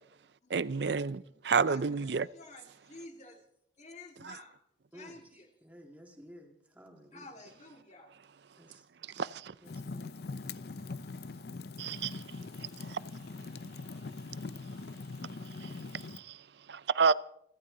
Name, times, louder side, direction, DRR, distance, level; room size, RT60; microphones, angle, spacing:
voice 1, 0.5-2.3 9.2-9.5 11.8-12.1 12.9-13.0 16.7-17.1, right 5 dB, 65° right, 0.5 m, -29 dB
voice 2, 1.6-3.4 3.8-4.6 4.9-5.5 7.1-8.1, left 2 dB, 35° left, 2.1 m, -51 dB
voice 3, 5.6-7.5 8.6-8.8 9.6-10.2, equal, 10° right, 2.1 m, -54 dB
Fire, 9.6-16.2, left 3 dB, 55° left, 0.5 m, -42 dB
29.0 x 12.0 x 3.9 m
head